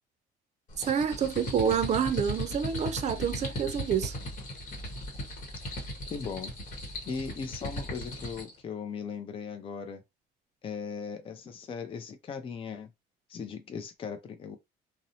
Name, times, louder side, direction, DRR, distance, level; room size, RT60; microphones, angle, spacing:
sound 1, 0.7-8.6, equal, 50° left, 1.1 m, -37 dB
voice 1, 0.9-4.1, right 7 dB, 45° right, 0.5 m, -28 dB
voice 2, 6.1-6.5 7.1-10.0 10.6-12.9 13.3-14.6, left 6 dB, 30° left, 0.4 m, -38 dB
2.6 x 2.0 x 2.7 m
cardioid pair, 110°, 17 cm